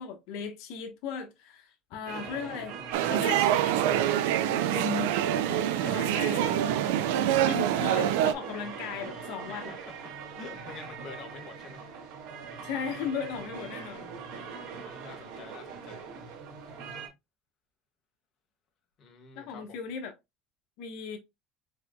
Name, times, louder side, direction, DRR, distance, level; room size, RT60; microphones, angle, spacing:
voice 1, 0.0-2.8 3.0-5.2 5.5-6.7 7.4-9.8 12.6-14.1 19.3-20.1 20.8-21.2, left 6 dB, 75° left, 1.2 m, -37 dB
sound 1, 2.1-17.1, right 6 dB, 75° right, 1.6 m, -42 dB
sound 2, 2.9-8.3, right 11 dB, 90° right, 0.4 m, -26 dB
voice 2, 5.6-6.4 9.5-9.9 10.3-11.9 14.5-16.1 19.0-19.8, left 4 dB, 45° left, 1.6 m, -48 dB
4.8 x 3.8 x 2.3 m
cardioid pair, 120°, 0 cm